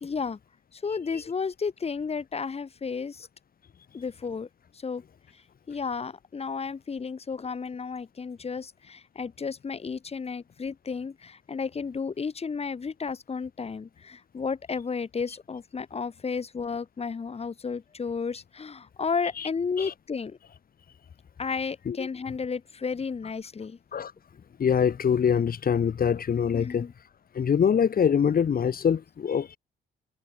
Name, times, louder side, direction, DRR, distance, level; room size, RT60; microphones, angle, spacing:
voice 1, 0.0-0.4 0.7-3.3 3.9-4.5 4.7-5.0 5.7-20.4 21.4-23.8 26.5-26.9, left 5 dB, 30° left, 1.3 m, -33 dB
voice 2, 24.6-26.9 27.3-29.6, left 7 dB, 45° left, 2.2 m, -24 dB
cardioid pair, 90°, 20 cm